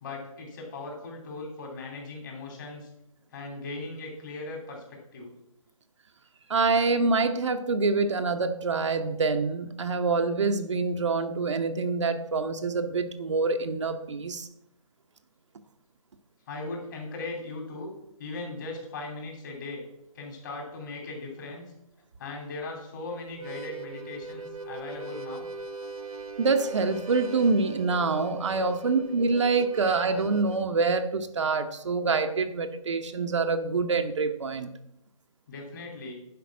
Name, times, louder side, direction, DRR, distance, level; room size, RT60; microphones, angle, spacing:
voice 1, 0.0-2.9 3.3-4.8 5.1-5.3 16.5-17.9 18.2-19.9 20.1-21.7 22.2-25.5 35.5-36.1, left 3 dB, 35° left, 1 dB, 3.1 m, -38 dB
voice 2, 6.5-14.5 26.4-34.7, right 4 dB, 55° right, 7 dB, 0.9 m, -26 dB
Harmonica, 23.3-30.7, right 3 dB, 80° right, 1.1 m, -40 dB
10.5 x 5.2 x 6.2 m, 0.82 s
hypercardioid pair, 160°, 18 cm